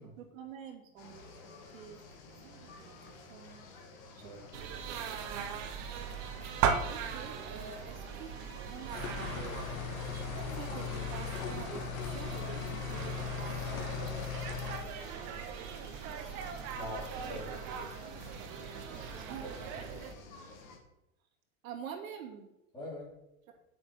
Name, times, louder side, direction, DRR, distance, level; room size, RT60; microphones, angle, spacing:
voice 1, 0.0-3.6 4.1-4.5 6.9-9.6 10.4-12.7 12.9-14.5 19.3-19.4 21.6-22.5, right 7 dB, 80° right, 1 dB, 2.6 m, -48 dB
sound 1, 1.0-20.8, left 4 dB, 40° left, 2.2 m, -53 dB
sound 2, 4.5-20.1, right 7 dB, 30° right, 0.8 m, -39 dB
sound 3, 8.9-14.8, left 7 dB, 90° left, 2.2 m, -38 dB
voice 2, 16.7-17.9 19.0-19.2 19.6-20.0 22.7-23.1, left 2 dB, 10° left, -7 dB, 4.1 m, -45 dB
9.2 x 7.8 x 5.8 m, 0.89 s
supercardioid pair, 175°, 40 cm